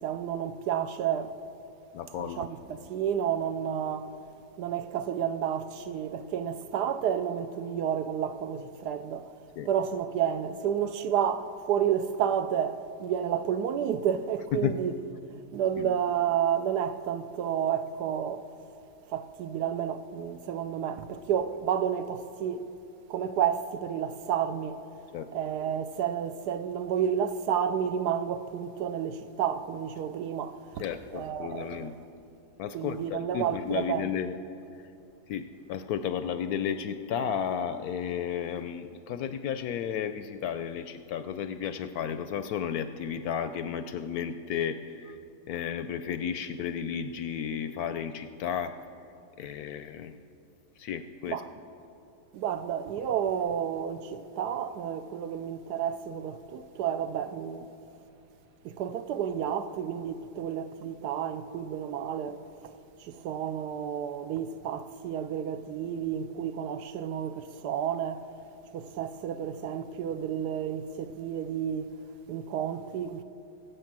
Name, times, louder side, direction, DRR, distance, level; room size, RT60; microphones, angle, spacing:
voice 1, 0.0-1.4 2.2-4.1 4.6-9.3 9.6-14.9 15.5-18.5 19.1-22.7 23.1-24.8 25.3-30.8 31.1-31.9 32.7-34.1 51.3-51.5 52.3-57.7 58.6-68.3 68.7-72.0 72.3-73.2, right 9 dB, 75° right, 1.1 m, -31 dB
voice 2, 1.9-2.5 9.6-9.7 14.5-14.8 15.8-16.0 25.1-25.3 30.8-31.9 32.6-34.4 35.3-45.2 45.5-48.7 49.4-50.1 50.8-51.4, left 8 dB, 70° left, 0.9 m, -33 dB
22.0 x 7.9 x 6.0 m
omnidirectional pair, 1.9 m